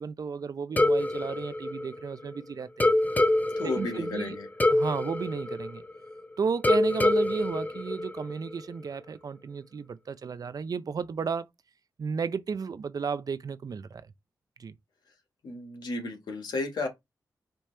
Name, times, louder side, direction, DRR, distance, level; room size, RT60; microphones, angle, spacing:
voice 1, 0.0-2.9 3.6-4.4 4.7-5.8 6.4-11.5 12.0-14.0 14.6-14.7, right 5 dB, 60° right, 0.5 m, -33 dB
sound 1, 0.8-2.4 2.8-6.2 6.6-8.6, left 1 dB, 25° left, 0.9 m, -26 dB
voice 2, 3.6-4.5 15.4-16.9, left 3 dB, 85° left, 1.6 m, -33 dB
5.2 x 3.0 x 3.2 m
cardioid pair, 55°, 7 cm